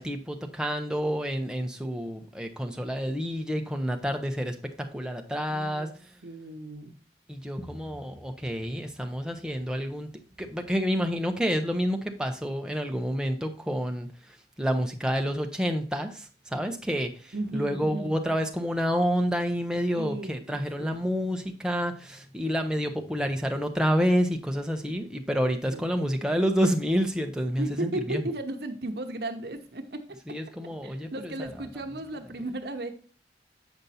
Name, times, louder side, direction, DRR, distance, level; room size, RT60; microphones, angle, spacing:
voice 1, 0.0-6.2 7.3-10.1 10.4-28.3 30.3-31.6, equal, 5° right, 4 dB, 0.8 m, -29 dB
voice 2, 5.5-5.9 6.2-7.0 17.3-18.1 20.0-21.0 25.7-25.8 27.6-30.0 30.8-32.9, right 1 dB, 60° right, 6 dB, 0.9 m, -35 dB
8.0 x 5.2 x 4.2 m, 0.39 s
head